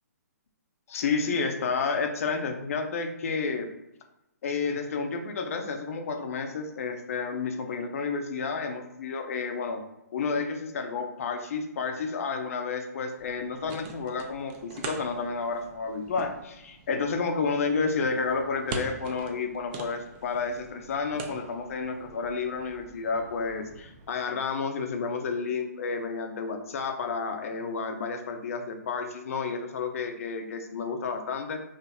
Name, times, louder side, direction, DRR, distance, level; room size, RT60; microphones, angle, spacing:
voice 1, 0.9-3.7 4.4-9.8 10.1-31.6, left 4 dB, 55° left, 6 dB, 0.4 m, -31 dB
sound 1, 13.2-24.1, right 4 dB, 30° right, 0.3 m, -44 dB
2.8 x 2.4 x 2.2 m, 0.86 s
hypercardioid pair, 135°, 9 cm